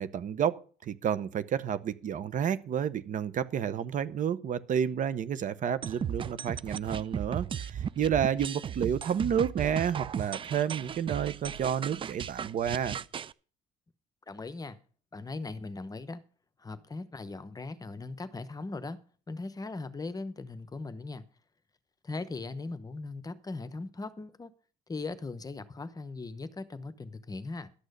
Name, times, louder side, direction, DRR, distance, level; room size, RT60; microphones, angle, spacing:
voice 1, 0.0-13.0, right 8 dB, 50° right, 0.8 m, -30 dB
sound 1, 5.8-13.3, right 8 dB, 30° right, 0.4 m, -36 dB
voice 2, 14.3-14.8 15.1-16.2 16.6-19.0 19.3-21.2 22.0-24.5 24.9-27.7, left 3 dB, 20° left, 0.8 m, -39 dB
11.5 x 6.2 x 6.6 m
cardioid pair, 110°, 17 cm